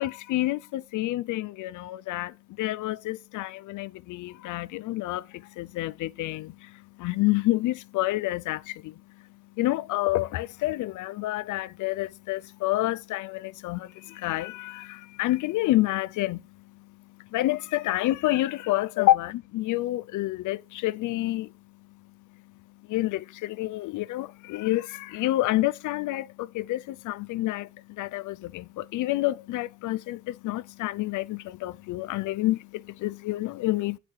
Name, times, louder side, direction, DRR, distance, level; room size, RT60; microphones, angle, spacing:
voice 1, 0.0-21.5 21.9-22.1 22.9-34.0, left 17 dB, 80° left, 0.5 m, -29 dB
9.0 x 4.8 x 4.7 m
cardioid pair, 90°, 30 cm